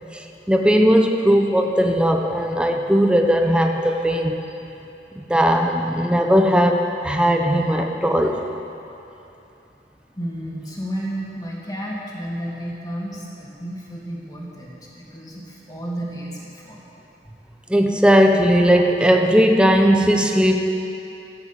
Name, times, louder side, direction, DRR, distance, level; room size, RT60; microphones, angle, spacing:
voice 1, 0.1-4.4 5.2-8.4 17.7-20.6, equal, 5° right, 3 dB, 0.7 m, -18 dB
voice 2, 10.2-16.8 17.2-17.4, equal, 20° left, -4 dB, 2.5 m, -32 dB
14.0 x 9.5 x 7.5 m, 2.9 s
head